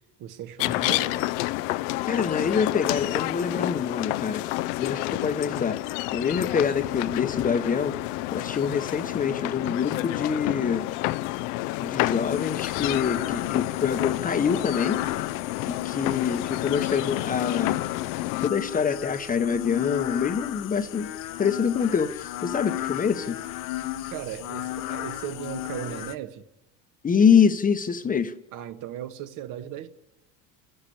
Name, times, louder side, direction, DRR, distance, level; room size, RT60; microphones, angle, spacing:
voice 1, 0.2-1.3 24.1-26.5 28.5-29.9, right 11 dB, 55° right, 1.5 m, -37 dB
sound 1, 0.6-18.5, left 18 dB, 75° left, 0.7 m, -29 dB
voice 2, 2.1-4.4 4.8-5.8 6.1-8.0 8.3-10.9 11.8-15.0 15.7-17.8 18.4-23.4 27.0-28.3, left 6 dB, 20° left, 0.9 m, -25 dB
sound 2, 12.3-26.1, left 14 dB, 55° left, 1.0 m, -34 dB
29.5 x 11.0 x 8.5 m
supercardioid pair, 125°, 37 cm